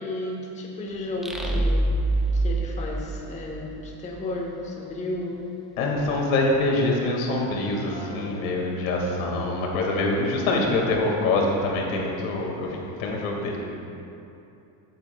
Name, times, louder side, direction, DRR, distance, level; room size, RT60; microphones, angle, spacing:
voice 1, 0.0-1.9 2.3-5.4 7.9-9.2, left 2 dB, 15° left, -1 dB, 0.9 m, -34 dB
sound 1, 1.2-3.9, right 2 dB, ahead, 0.3 m, -25 dB
voice 2, 5.8-13.6, left 2 dB, 80° left, 0 dB, 2.0 m, -25 dB
14.5 x 9.2 x 2.3 m, 2.8 s
cardioid pair, 160°, 40 cm